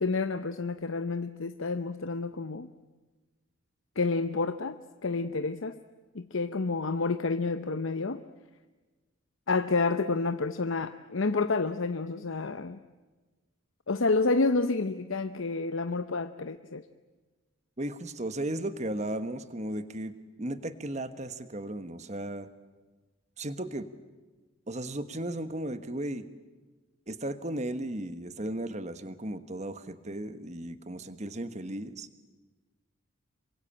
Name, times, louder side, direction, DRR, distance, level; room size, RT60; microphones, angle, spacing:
voice 1, 0.0-2.7 4.0-5.8 6.1-8.2 9.5-12.8 13.9-16.8, left 3 dB, 70° left, 10 dB, 0.8 m, -29 dB
voice 2, 17.8-22.5 23.4-23.9 24.7-26.3 27.1-32.1, right 1 dB, 35° right, 11 dB, 1.3 m, -35 dB
27.5 x 24.0 x 8.8 m, 1.3 s
head